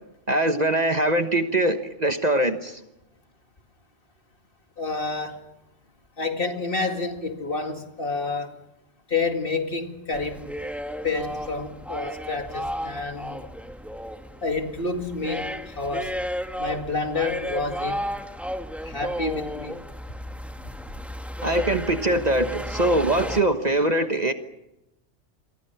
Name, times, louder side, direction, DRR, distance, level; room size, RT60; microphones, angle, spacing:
voice 1, 0.3-2.8 21.4-24.3, right 1 dB, 35° right, 1.3 m, -22 dB
voice 2, 4.8-5.4 6.2-8.5 9.1-10.5 11.0-13.4 14.4-15.5 15.8-16.1 16.6-18.0 18.8-19.8, left 3 dB, 45° left, 2.4 m, -29 dB
sound 1, 10.1-23.4, equal, ahead, 1.2 m, -34 dB
28.0 x 23.5 x 5.8 m
omnidirectional pair, 1.3 m